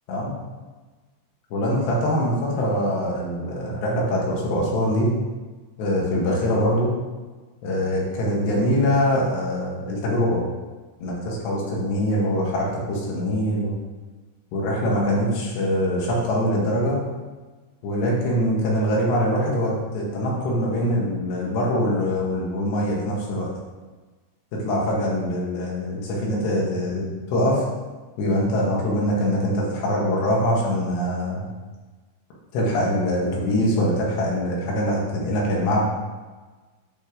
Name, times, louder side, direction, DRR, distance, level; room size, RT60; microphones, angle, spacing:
voice 1, 1.5-5.1 5.8-6.9 7.6-10.4 11.0-13.8 14.5-17.0 17.8-23.5 24.5-27.7 28.2-31.5 32.5-35.8, equal, 70° left, -4 dB, 3.9 m, -23 dB
9.1 x 5.2 x 6.5 m, 1.3 s
omnidirectional pair, 5.2 m